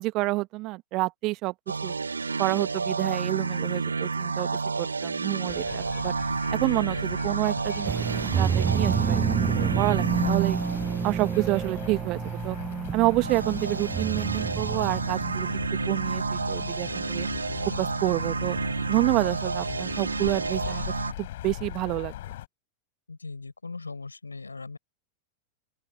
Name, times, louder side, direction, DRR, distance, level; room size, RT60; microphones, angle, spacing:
voice 1, 0.0-1.5 1.8-1.9 2.4-4.5 4.8-6.1 6.5-10.6 11.0-12.6 12.9-15.5 15.9-17.3 17.8-18.6 18.9-20.8 21.2-22.1, right 21 dB, 40° right, 1.8 m, -28 dB
sound 1, 1.7-11.7 13.1-21.1, right 4 dB, 75° right, 0.9 m, -30 dB
sound 2, 5.5-22.5, left 14 dB, 55° left, 5.3 m, -39 dB
sound 3, 7.8-15.5, right 7 dB, 20° right, 0.9 m, -28 dB
voice 2, 23.1-24.8, left 3 dB, 80° left, 7.2 m, -39 dB
open air
figure-of-eight pair, 90°, 0 cm